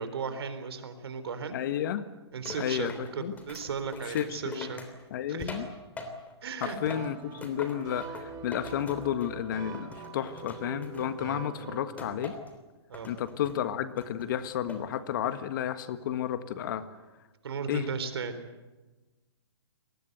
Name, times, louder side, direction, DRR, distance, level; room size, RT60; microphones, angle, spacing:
voice 1, 0.0-1.6 2.3-4.9 5.3-5.7 6.4-6.8 12.9-13.1 17.4-18.5, right 5 dB, 65° right, 10 dB, 3.8 m, -36 dB
voice 2, 1.5-2.1 2.6-3.3 4.1-4.8 5.1-5.7 6.6-12.3 13.1-16.8 17.7-17.9, left 10 dB, 50° left, 11 dB, 1.6 m, -32 dB
Plasticbottle rattling, 2.5-6.4 6.6-9.4 9.7-11.4 12.0-12.6 12.9-13.6 14.0-14.9 15.3-15.7, left 3 dB, 10° left, 3.2 m, -44 dB
sound 1, 6.9-12.2, right 6 dB, 25° right, 2.8 m, -44 dB
26.0 x 19.5 x 8.0 m, 1.2 s
hypercardioid pair, 130°, 14 cm